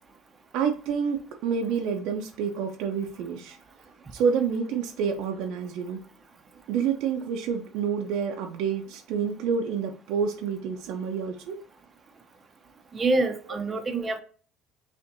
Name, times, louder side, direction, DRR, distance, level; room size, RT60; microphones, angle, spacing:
voice 1, 0.5-3.6 4.1-6.0 6.7-11.6, right 6 dB, 70° right, 0.5 m, -28 dB
voice 2, 12.9-14.2, right 3 dB, 30° right, 0.6 m, -26 dB
5.2 x 2.5 x 2.6 m
hypercardioid pair, 75°, 0 cm